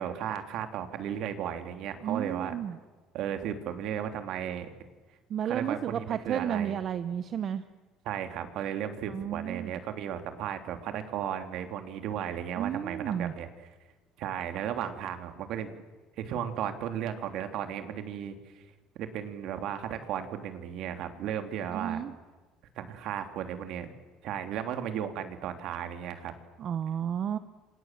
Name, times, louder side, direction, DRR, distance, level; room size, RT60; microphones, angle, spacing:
voice 1, 0.0-2.5 3.1-4.7 5.4-6.8 8.0-13.5 14.2-15.7 16.2-18.7 18.9-22.0 22.7-23.9 24.2-26.3, right 9 dB, 65° right, 7 dB, 3.1 m, -35 dB
voice 2, 2.0-2.8 5.3-7.6 9.1-9.7 12.6-13.3 21.7-22.1 26.6-27.4, right 9 dB, 45° right, 12 dB, 1.0 m, -32 dB
29.5 x 26.0 x 7.5 m, 1.3 s
cardioid pair, 130°, 0 cm